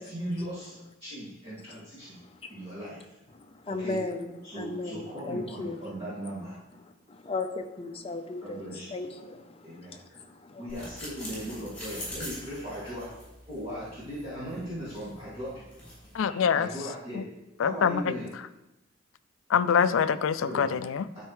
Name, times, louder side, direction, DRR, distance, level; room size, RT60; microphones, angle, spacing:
voice 1, 0.0-2.2 2.5-3.1 3.7-4.0 4.4-6.6 8.4-8.9 9.6-10.0 10.6-13.1 13.5-15.7 16.5-17.2 17.6-18.3 20.4-20.9, equal, 30° right, -11 dB, 2.3 m, -38 dB
voice 2, 2.2-2.6 3.3-5.9 7.1-8.6 8.9-10.6, left 3 dB, 30° left, 6 dB, 0.6 m, -36 dB
sound 1, 10.7-16.2, left 1 dB, 5° left, 3.0 m, -44 dB
voice 3, 16.1-16.7 17.6-18.1 19.5-21.0, left 7 dB, 75° left, 13 dB, 0.4 m, -24 dB
12.5 x 4.4 x 3.2 m, 0.97 s
head